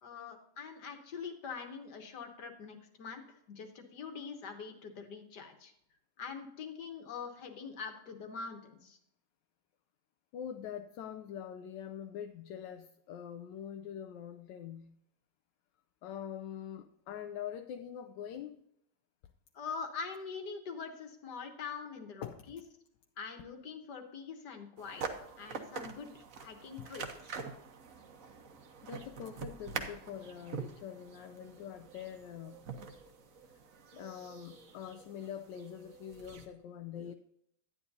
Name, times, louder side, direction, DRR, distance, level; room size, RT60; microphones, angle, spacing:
voice 1, 0.0-5.7 6.2-9.0 19.5-22.6 23.2-25.0 25.4-27.2, left 5 dB, 65° left, 6 dB, 1.8 m, -44 dB
voice 2, 10.3-15.0 16.0-18.6 22.2-22.4 26.8-26.9 28.8-32.7 33.9-37.1, left 9 dB, 80° left, 7 dB, 1.2 m, -44 dB
sound 1, 24.8-36.4, right 5 dB, 55° right, 1.2 m, -45 dB
11.5 x 9.8 x 2.7 m, 0.75 s
omnidirectional pair, 1.9 m